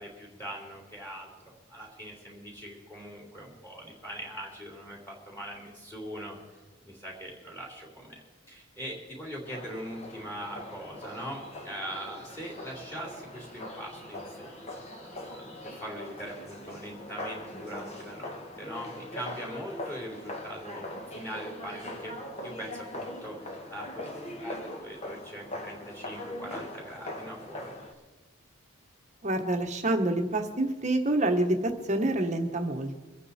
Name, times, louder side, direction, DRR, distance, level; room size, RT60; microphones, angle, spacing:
voice 1, 0.0-6.4 6.8-14.8 15.2-22.1 22.4-27.7, equal, 10° left, -2 dB, 3.2 m, -42 dB
sound 1, 9.5-27.9, left 1 dB, 30° left, 1.6 m, -41 dB
voice 2, 29.2-33.0, right 1 dB, 35° right, 5 dB, 1.3 m, -27 dB
24.0 x 9.1 x 4.3 m, 1.2 s
head